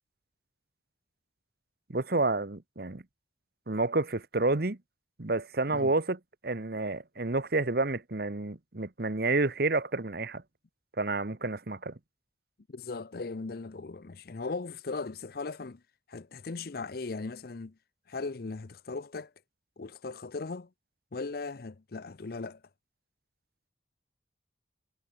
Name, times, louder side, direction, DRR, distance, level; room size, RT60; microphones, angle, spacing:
voice 1, 1.9-3.0 3.7-4.8 5.2-10.4 11.0-11.9, right 2 dB, 55° right, 1.1 m, -29 dB
voice 2, 12.7-15.8 16.1-17.8 18.1-19.3 19.8-20.7 21.1-22.6, left 3 dB, 55° left, 0.6 m, -38 dB
head